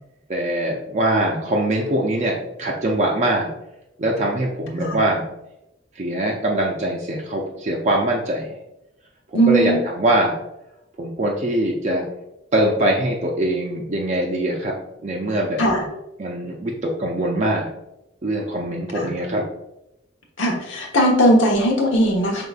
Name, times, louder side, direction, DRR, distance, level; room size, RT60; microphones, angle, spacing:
voice 1, 0.3-3.5 4.0-5.3 6.0-8.5 9.3-10.4 11.0-12.0 12.5-14.7 15.0-15.6 16.2-17.7 18.2-19.4, right 1 dB, 40° right, -1 dB, 0.5 m, -22 dB
voice 2, 9.3-9.8 15.6-15.8 18.9-19.1 20.4-22.5, right 1 dB, 80° left, 0 dB, 1.1 m, -18 dB
5.2 x 3.8 x 2.4 m, 0.89 s
head